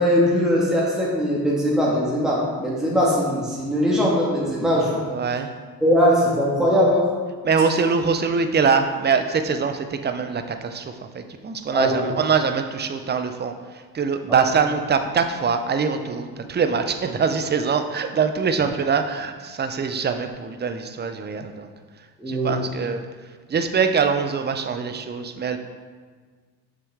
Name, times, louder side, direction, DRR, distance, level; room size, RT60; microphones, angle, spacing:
voice 1, 0.0-5.0 5.8-7.1 11.7-12.1 14.3-14.4 22.2-22.5, equal, ahead, -6 dB, 1.7 m, -20 dB
voice 2, 5.1-5.5 7.4-21.7 22.3-23.0 23.5-25.6, right 5 dB, 25° right, 8 dB, 0.6 m, -23 dB
6.6 x 5.5 x 3.6 m, 1.6 s
hypercardioid pair, 55°, 44 cm